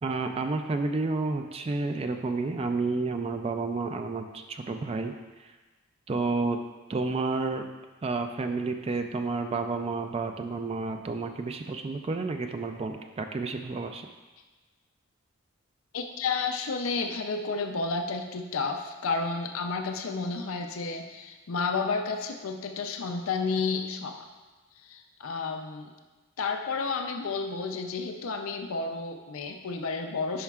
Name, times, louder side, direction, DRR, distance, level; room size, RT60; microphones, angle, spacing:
voice 1, 0.0-5.1 5.4-5.5 6.1-6.6 6.9-7.7 8.0-14.1, right 3 dB, 30° right, 6 dB, 0.3 m, -30 dB
voice 2, 15.9-24.3 24.8-25.9 26.4-30.4, left 4 dB, 85° left, 5 dB, 0.5 m, -31 dB
9.9 x 5.6 x 2.4 m, 1.2 s
head